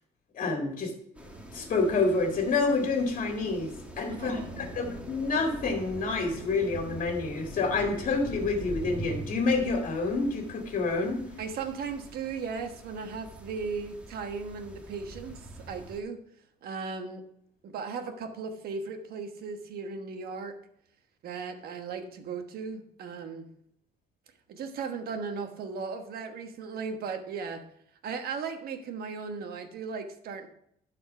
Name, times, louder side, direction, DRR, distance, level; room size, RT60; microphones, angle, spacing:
voice 1, 0.3-0.9 1.5-11.2, left 3 dB, 50° left, 2 dB, 1.8 m, -28 dB
sound 1, 1.1-16.0, right 1 dB, 5° right, 1.4 m, -43 dB
voice 2, 4.1-4.7 11.4-15.4 15.7-16.2 16.6-17.2 17.6-20.6 21.2-23.5 24.5-27.6 28.0-30.5, right 5 dB, 65° right, 7 dB, 1.3 m, -37 dB
11.5 x 4.4 x 5.5 m, 0.70 s
cardioid pair, 110°, 17 cm